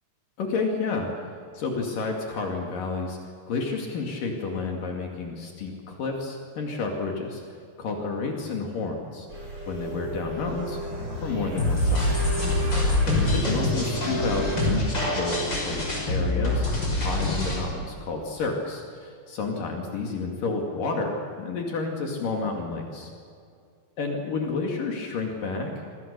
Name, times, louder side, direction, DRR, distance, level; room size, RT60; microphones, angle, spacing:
voice 1, 0.4-1.1 1.5-3.2 3.5-7.4 7.8-9.3 9.7-10.8 11.2-12.1 12.7-16.7 16.9-23.1 24.0-25.7, left 4 dB, 70° left, 1 dB, 3.9 m, -30 dB
sound 1, 9.3-14.7, right 2 dB, 35° right, 6.4 m, -34 dB
sound 2, 11.6-17.6, left 1 dB, 30° left, 6.6 m, -25 dB
28.0 x 24.5 x 6.8 m, 2.3 s
omnidirectional pair, 4.1 m